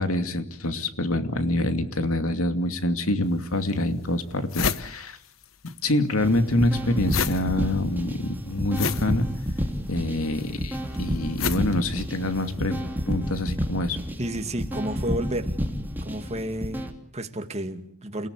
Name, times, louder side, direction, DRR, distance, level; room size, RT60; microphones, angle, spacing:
voice 1, 0.0-5.2 5.8-9.3 9.9-12.8 13.1-14.0, left 1 dB, 90° left, 2.6 m, -26 dB
sound 1, 3.3-3.4 3.9-4.0 4.2-5.8 6.0-12.6, left 6 dB, 70° left, 1.1 m, -31 dB
sound 2, 6.2-16.9, equal, 10° right, 3.0 m, -31 dB
voice 2, 14.2-15.5 16.0-18.3, right 1 dB, 30° right, 2.3 m, -31 dB
29.0 x 18.0 x 8.4 m
head